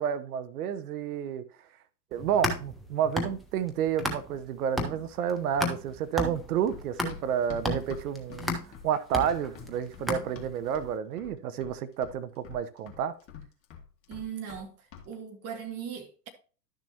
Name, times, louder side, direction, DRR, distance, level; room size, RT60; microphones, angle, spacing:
voice 1, 0.0-1.4 2.1-8.6 8.8-13.1, right 8 dB, 60° right, 1.0 m, -30 dB
sound 1, 2.1-4.5 4.8-10.7, left 1 dB, ahead, 0.4 m, -34 dB
Run, 6.7-10.9 11.2-11.8 12.0-14.6 14.9-15.1, left 7 dB, 25° left, 1.8 m, -46 dB
voice 2, 14.1-14.7 15.1-16.3, right 8 dB, 30° right, 1.8 m, -38 dB
11.5 x 6.5 x 2.9 m
hypercardioid pair, 115°, 49 cm